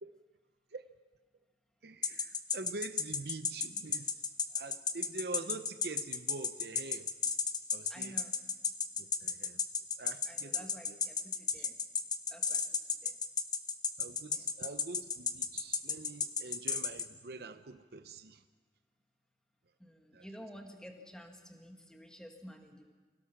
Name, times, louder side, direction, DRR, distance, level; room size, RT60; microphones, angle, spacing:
voice 1, 1.8-4.2 4.5-7.1 7.7-8.2 9.0-9.6 10.0-11.0 11.6-11.7 14.0-18.4 20.1-20.3, right 3 dB, 60° right, 0.7 m, -45 dB
sound 1, 2.0-17.1, left 6 dB, 25° left, 0.9 m, -33 dB
voice 2, 7.9-8.3 10.2-11.8 12.3-12.6 13.0-13.2 14.3-14.5 19.8-22.9, equal, 5° left, 1.6 m, -51 dB
26.5 x 17.5 x 5.9 m
head